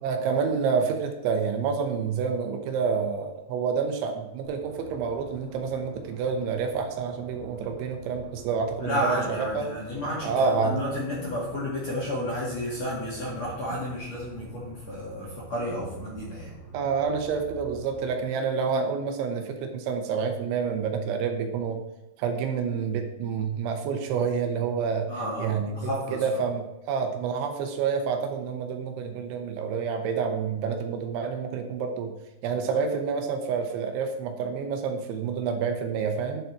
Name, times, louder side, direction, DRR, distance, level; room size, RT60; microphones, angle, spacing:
voice 1, 0.0-9.7 10.2-10.8 16.7-21.8 22.2-25.1 25.4-32.1 32.4-36.4, right 6 dB, 75° right, 5 dB, 3.2 m, -28 dB
sound 1, 4.4-18.2, right 2 dB, 15° right, 1.6 m, -47 dB
voice 2, 8.8-16.5 25.1-26.2, left 1 dB, 50° left, -5 dB, 2.2 m, -32 dB
11.0 x 7.0 x 4.6 m, 0.94 s
omnidirectional pair, 5.7 m